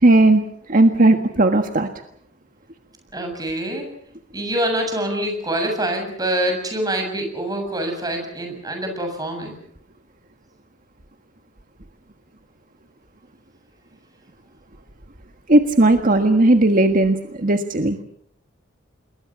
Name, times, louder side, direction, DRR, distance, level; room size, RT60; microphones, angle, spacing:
voice 1, 0.0-0.4 0.7-1.9 15.5-18.0, right 2 dB, 45° right, 6 dB, 1.6 m, -16 dB
voice 2, 3.1-3.9 4.3-9.6, right 1 dB, 20° right, 4 dB, 7.3 m, -25 dB
28.0 x 21.5 x 6.1 m, 0.68 s
head